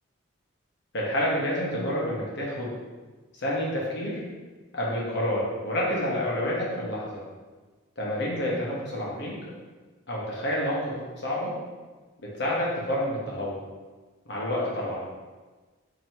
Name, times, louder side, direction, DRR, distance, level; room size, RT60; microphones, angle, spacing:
voice 1, 0.9-2.7 3.4-4.2 4.7-7.2 8.0-9.3 10.1-11.5 12.2-13.6 14.3-15.0, left 1 dB, 55° left, -5 dB, 1.0 m, -28 dB
2.9 x 2.8 x 4.4 m, 1.3 s
head